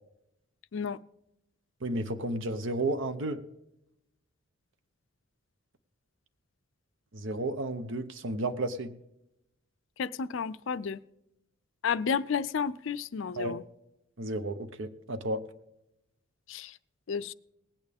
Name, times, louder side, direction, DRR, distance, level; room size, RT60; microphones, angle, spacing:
voice 1, 1.8-3.4 7.1-8.9 13.4-13.6 14.2-15.4, right 2 dB, 60° right, 0.8 m, -32 dB
voice 2, 10.0-11.0 11.8-13.6 16.5-16.7 17.1-17.3, left 6 dB, 60° left, 0.4 m, -31 dB
19.0 x 8.8 x 3.5 m
head